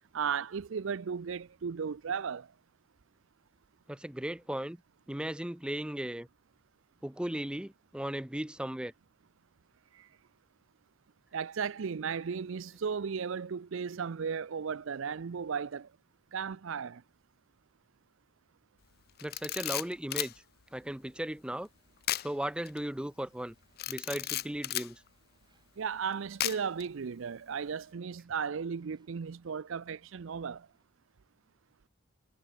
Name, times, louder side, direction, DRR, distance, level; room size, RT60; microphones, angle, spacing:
voice 1, 0.1-2.5 11.3-15.9 16.3-17.0 25.8-30.7, right 6 dB, 60° right, 0.5 m, -35 dB
voice 2, 3.9-4.8 5.1-6.3 7.0-8.9 19.2-20.3 20.7-21.7 22.2-23.5 23.9-25.0, right 1 dB, 5° right, 0.4 m, -36 dB
Camera, 19.2-20.3 22.0-22.3 22.7-22.8 23.8-24.9 26.4-26.8, left 14 dB, 45° left, 0.5 m, -34 dB
sound 1, 21.7-26.7 27.6-27.7 28.4-30.9, right 2 dB, 20° right, 5.6 m, -76 dB
head